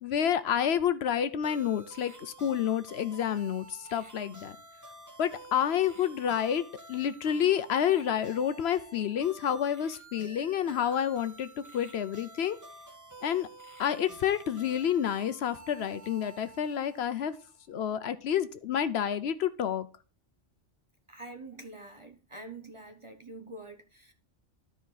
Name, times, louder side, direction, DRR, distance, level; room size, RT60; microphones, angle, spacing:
voice 1, 0.0-4.6 5.2-6.6 6.9-11.5 11.7-12.6 13.2-13.5 13.8-17.3 17.7-19.9, left 9 dB, 70° left, 0.8 m, -29 dB
sound 1, 1.4-17.6, right 2 dB, 15° right, 1.3 m, -51 dB
voice 2, 21.1-24.1, right 2 dB, 30° right, 0.7 m, -46 dB
12.5 x 4.5 x 3.9 m
omnidirectional pair, 1.2 m